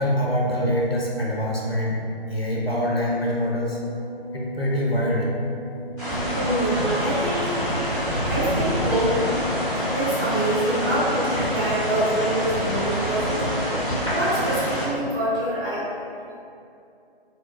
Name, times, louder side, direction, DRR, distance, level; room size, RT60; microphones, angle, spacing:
voice 1, 0.0-2.0 2.3-3.8 4.3-5.3, equal, 80° left, -3 dB, 0.7 m, -24 dB
sound 1, 1.9-14.9, left 1 dB, 35° left, 0.7 m, -37 dB
sound 2, 6.0-14.8, equal, ahead, 1.0 m, -26 dB
voice 2, 6.3-7.5 8.2-13.6 14.1-15.8 16.1-16.2, right 1 dB, 20° right, -14 dB, 1.3 m, -26 dB
3.8 x 2.2 x 2.3 m, 2.5 s
figure-of-eight pair, 140°, 30 cm